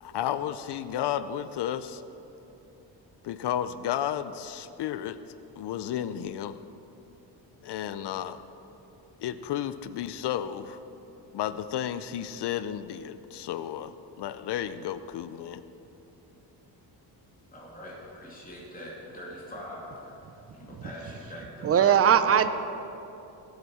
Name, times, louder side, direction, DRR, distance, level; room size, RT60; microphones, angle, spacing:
voice 1, 0.0-2.0 3.2-5.2 5.6-6.6 7.6-8.4 9.2-10.8 11.3-15.6, left 10 dB, 65° left, 13 dB, 0.5 m, -32 dB
voice 2, 17.5-20.1 20.5-22.0, left 1 dB, 20° left, -4 dB, 2.6 m, -43 dB
voice 3, 21.6-22.5, right 8 dB, 35° right, 11 dB, 0.5 m, -19 dB
18.0 x 8.1 x 4.8 m, 2.9 s
wide cardioid pair, 170°, 44 cm